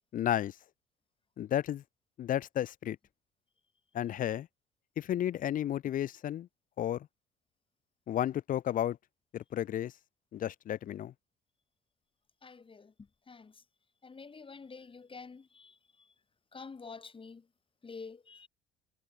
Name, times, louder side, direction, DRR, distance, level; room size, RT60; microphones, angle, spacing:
voice 1, 0.1-0.6 1.4-1.8 2.2-3.0 3.9-4.5 5.0-6.5 6.8-7.1 8.1-9.0 9.3-9.9 10.3-11.1, left 11 dB, 40° left, 0.4 m, -32 dB
voice 2, 12.4-13.6 14.0-16.1 16.5-17.5 17.8-18.5, left 4 dB, 25° left, 1.6 m, -48 dB
hypercardioid pair, 65°, 21 cm